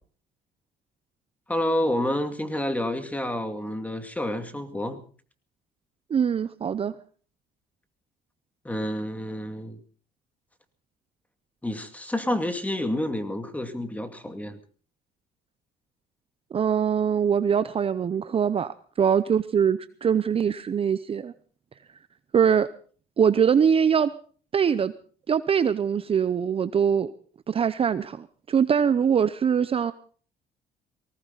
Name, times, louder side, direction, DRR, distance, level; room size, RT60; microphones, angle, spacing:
voice 1, 1.5-5.0 8.6-9.8 11.6-14.6, left 1 dB, 10° left, 8 dB, 2.3 m, -29 dB
voice 2, 6.1-6.9 16.5-21.3 22.3-22.7 23.2-24.1 24.5-24.9 25.3-27.1 27.5-29.9, right 7 dB, 35° right, 13 dB, 0.7 m, -23 dB
20.0 x 18.0 x 4.0 m, 0.42 s
cardioid pair, 110°, 17 cm